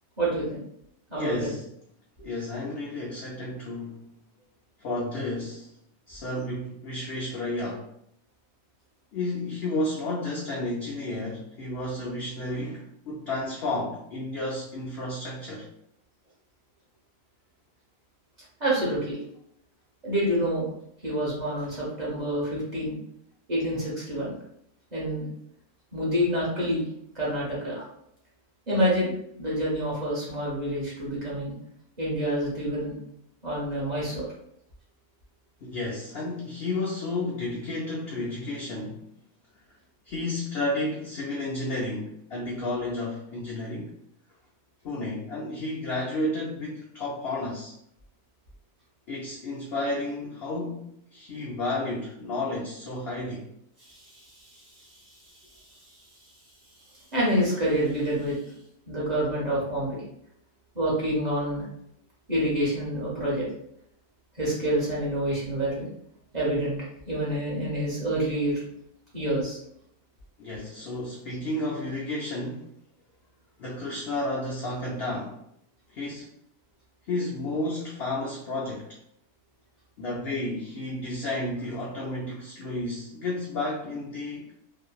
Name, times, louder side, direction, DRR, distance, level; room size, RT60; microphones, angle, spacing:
voice 1, 0.2-0.6 1.1-1.5 18.6-19.2 20.0-20.6 21.0-23.0 23.5-24.3 24.9-25.3 25.9-26.8 27.1-27.8 28.7-31.5 32.0-32.9 33.4-34.3 53.9-54.0 57.1-58.3 58.9-60.0 60.7-61.6 62.3-63.5 64.4-65.9 66.3-66.8 67.1-68.5 69.1-69.6, equal, 35° right, -7 dB, 0.9 m, -27 dB
voice 2, 1.2-1.7 2.2-4.1 4.8-5.7 6.1-7.9 9.1-15.7 35.6-39.0 40.1-43.9 44.8-47.7 49.1-53.5 70.4-72.7 73.6-75.4 75.9-76.3 77.1-79.0 80.0-84.5, left 2 dB, 75° left, -3 dB, 0.5 m, -32 dB
2.8 x 2.5 x 2.3 m, 0.72 s
omnidirectional pair, 1.6 m